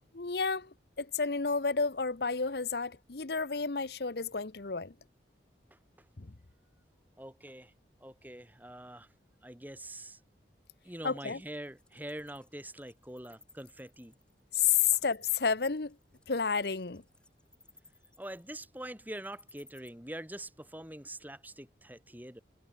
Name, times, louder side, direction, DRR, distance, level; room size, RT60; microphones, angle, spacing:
voice 1, 0.1-0.7 1.0-4.9 11.0-11.4 14.5-15.9 16.3-17.0, left 6 dB, 65° left, 1.0 m, -30 dB
voice 2, 7.2-7.7 8.0-9.1 9.4-10.2 10.8-14.1 14.9-15.0 18.2-22.4, right 1 dB, 10° right, 3.2 m, -44 dB
Wild animals, 11.3-19.9, left 2 dB, 5° left, 6.5 m, -60 dB
head